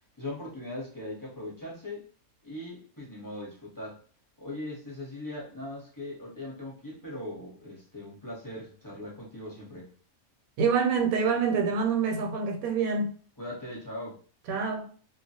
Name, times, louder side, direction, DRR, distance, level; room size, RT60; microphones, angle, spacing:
voice 1, 0.2-2.0 2.4-4.0 4.4-9.9 13.4-14.2, left 1 dB, 20° left, 0.7 m, -40 dB
voice 2, 10.6-13.2 14.5-14.9, right 5 dB, 75° right, 1.0 m, -26 dB
2.3 x 2.0 x 2.7 m
omnidirectional pair, 1.5 m